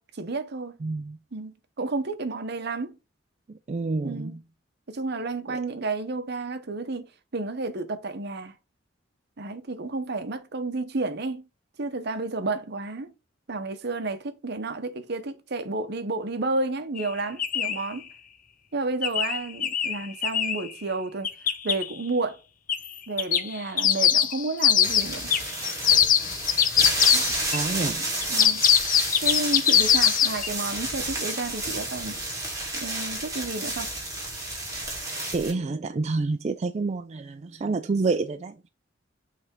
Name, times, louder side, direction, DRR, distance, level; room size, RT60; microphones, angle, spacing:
voice 1, 0.0-0.8 1.3-2.9 4.0-4.4 4.9-7.1 7.3-8.5 9.4-11.4 11.8-13.1 13.5-18.1 18.7-21.3 21.6-22.4 23.1-25.3 27.1-27.2 28.3-28.7 29.2-32.2 32.7-33.9, right 3 dB, 60° right, 0.8 m, -31 dB
voice 2, 0.8-1.2 3.5-4.4 5.5-5.6 27.5-28.1 35.3-38.7, right 3 dB, 35° right, 0.4 m, -28 dB
sound 1, 17.0-17.1 17.4-17.8 19.0-20.6 21.2-21.8 22.7-22.9 23.2-27.6 28.2-30.5, left 9 dB, 45° left, 0.8 m, -22 dB
sound 2, 24.8-35.5, right 2 dB, 20° right, 3.0 m, -31 dB
8.4 x 3.4 x 3.7 m
head